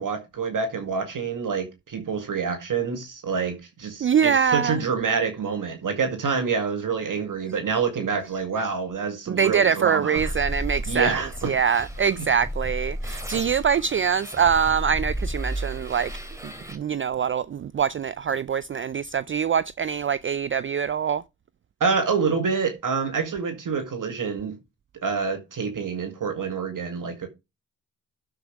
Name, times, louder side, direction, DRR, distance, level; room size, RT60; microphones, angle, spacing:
voice 1, 0.0-10.3 10.9-11.5 12.2-12.3 21.8-24.6 25.0-27.3, right 5 dB, 55° right, 2.0 m, -27 dB
voice 2, 4.0-4.8 9.3-16.1 16.4-21.2, right 7 dB, 30° right, 0.4 m, -24 dB
sound 1, 10.2-16.8, right 1 dB, 10° right, 3.0 m, -33 dB
11.5 x 5.2 x 4.6 m
supercardioid pair, 50°, 39 cm